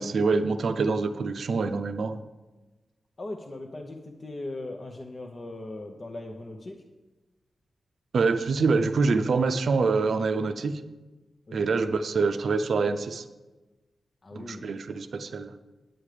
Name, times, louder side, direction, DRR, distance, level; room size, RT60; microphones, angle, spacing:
voice 1, 0.0-2.2 8.1-10.8 11.5-13.2 14.3-15.5, right 4 dB, 65° right, 10 dB, 0.6 m, -25 dB
voice 2, 3.2-6.8 11.5-11.8 14.2-14.7, left 2 dB, 35° left, 2 dB, 0.8 m, -39 dB
9.3 x 8.9 x 5.0 m, 1.1 s
wide cardioid pair, 150°, 0 cm